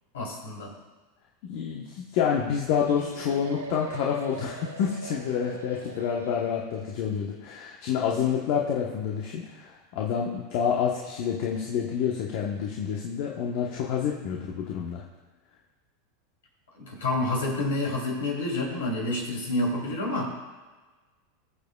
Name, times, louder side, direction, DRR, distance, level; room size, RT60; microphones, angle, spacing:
voice 1, 0.1-0.7 16.8-20.3, left 2 dB, 75° left, -2 dB, 3.4 m, -28 dB
voice 2, 1.5-15.0, left 7 dB, 55° left, -2 dB, 1.2 m, -28 dB
sound 1, 2.7-6.9, right 4 dB, 90° right, 0.8 m, -41 dB
21.0 x 7.2 x 2.4 m, 1.3 s
hypercardioid pair, 90°, 0 cm